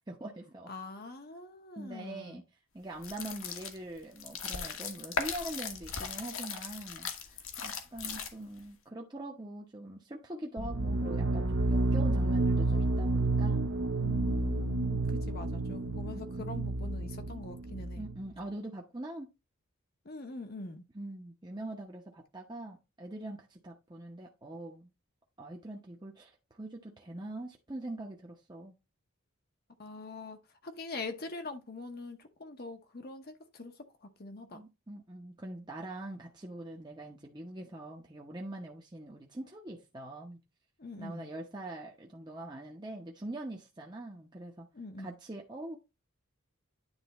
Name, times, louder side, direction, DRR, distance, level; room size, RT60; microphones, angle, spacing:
voice 1, 0.0-0.7 1.8-2.4 2.7-13.7 16.1-16.5 18.0-19.3 20.9-24.9 25.4-28.7 34.5-40.4 41.0-44.7 45.0-45.8, right 1 dB, 20° right, 0.8 m, -43 dB
voice 2, 0.7-2.4 14.0-18.0 20.0-20.8 29.8-33.9 34.2-34.6 40.8-41.3 44.7-45.2, left 3 dB, 45° left, 0.8 m, -43 dB
sound 1, 3.0-8.6, left 6 dB, 70° left, 1.2 m, -38 dB
sound 2, 10.6-18.2, right 2 dB, 55° right, 0.7 m, -30 dB
9.7 x 3.4 x 4.0 m
head